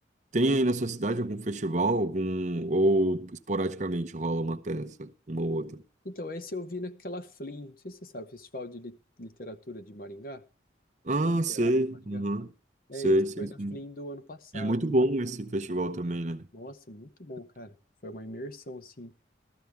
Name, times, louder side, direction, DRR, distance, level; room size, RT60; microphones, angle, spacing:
voice 1, 0.3-5.8 11.0-12.5 13.0-13.8 14.5-16.5, right 1 dB, 40° right, 0.7 m, -27 dB
voice 2, 6.0-10.4 11.3-11.8 12.1-12.2 12.9-14.8 16.5-17.8 18.0-19.1, equal, 50° left, 0.9 m, -40 dB
14.5 x 13.5 x 3.4 m
head